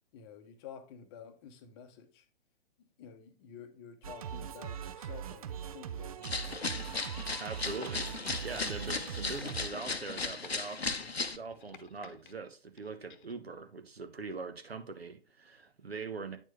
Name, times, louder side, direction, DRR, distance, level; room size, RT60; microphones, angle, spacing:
voice 1, 0.1-2.3 3.0-6.5, left 7 dB, 25° left, 0.8 m, -51 dB
Singing, 4.0-9.7, right 8 dB, 35° right, 0.5 m, -41 dB
sound 1, 6.2-11.4, left 4 dB, 90° left, 0.7 m, -36 dB
voice 2, 7.4-16.4, right 4 dB, 80° right, 1.1 m, -42 dB
sound 2, 9.3-9.9 10.2-10.5 11.0-12.3 12.8-13.4 14.4-14.5, left 7 dB, 50° left, 0.9 m, -55 dB
8.8 x 4.5 x 3.1 m
figure-of-eight pair, 125°, 31 cm